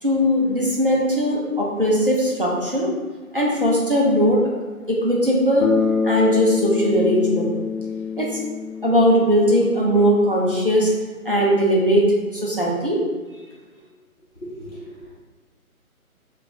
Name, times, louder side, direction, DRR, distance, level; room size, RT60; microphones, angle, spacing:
voice 1, 0.0-2.9 3.3-4.5 4.9-5.7 6.0-7.5 8.2-8.4 8.8-10.9 11.2-12.1 12.3-13.0, equal, 40° right, -4 dB, 0.5 m, -19 dB
Bass guitar, 5.6-9.8, left 5 dB, 60° left, 0.6 m, -25 dB
voice 2, 14.4-15.2, equal, 45° left, -10 dB, 0.9 m, -37 dB
2.4 x 2.3 x 3.5 m, 1.3 s
hypercardioid pair, 175°, 44 cm